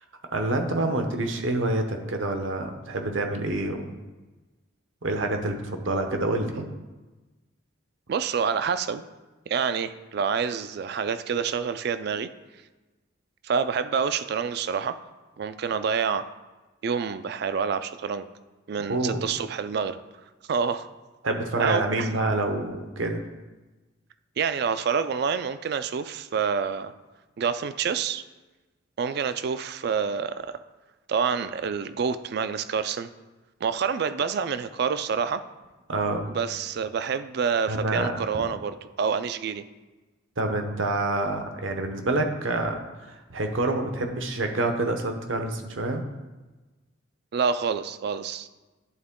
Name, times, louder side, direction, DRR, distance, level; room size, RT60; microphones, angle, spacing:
voice 1, 0.3-3.9 5.0-6.7 18.9-19.3 21.2-23.2 35.9-36.2 37.7-38.5 40.4-46.0, right 2 dB, 75° right, 5 dB, 0.8 m, -27 dB
voice 2, 8.1-9.0 9.5-12.3 13.4-15.0 15.4-16.3 16.8-18.3 18.7-20.0 20.5-20.9 21.6-22.1 24.4-26.9 27.4-28.2 29.0-30.6 31.1-33.1 33.6-35.4 36.3-39.6 47.3-48.5, right 6 dB, 55° right, 12 dB, 0.3 m, -27 dB
11.0 x 3.7 x 3.6 m, 1.2 s
head